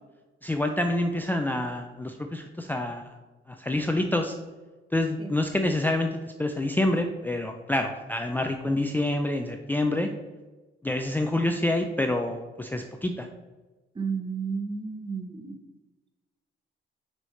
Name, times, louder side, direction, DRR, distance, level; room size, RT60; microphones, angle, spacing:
voice 1, 0.4-3.2 3.5-4.3 4.9-10.1 10.8-13.3, left 1 dB, 10° left, 4 dB, 0.4 m, -27 dB
voice 2, 13.9-15.6, right 5 dB, 25° right, 6 dB, 0.8 m, -32 dB
6.1 x 5.5 x 3.2 m, 1.2 s
cardioid pair, 90°, 20 cm